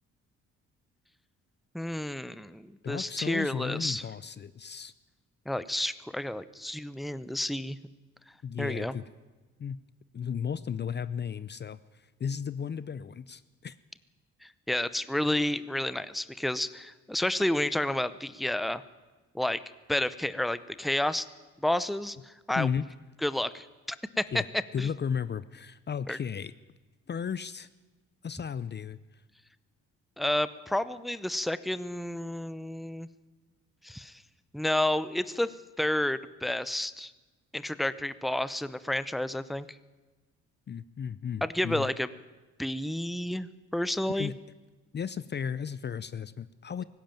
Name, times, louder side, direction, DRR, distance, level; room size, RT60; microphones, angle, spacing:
voice 1, 1.7-4.0 5.5-7.8 8.6-8.9 14.4-18.8 19.3-19.6 19.9-21.3 21.6-22.7 23.2-24.2 24.8-24.9 26.1-26.2 30.2-33.1 33.8-34.1 34.5-35.5 35.8-37.1 37.5-39.7 41.4-42.1 42.6-44.3, left 1 dB, ahead, 15 dB, 0.7 m, -30 dB
voice 2, 2.8-4.9 8.4-9.1 9.6-9.8 10.1-13.8 22.5-22.9 24.3-24.5 24.7-26.5 27.1-27.7 28.2-29.0 40.7-41.9 44.1-44.3 44.9-46.8, left 7 dB, 35° left, 16 dB, 0.6 m, -34 dB
18.5 x 16.0 x 9.0 m, 1.2 s
cardioid pair, 90°, 30 cm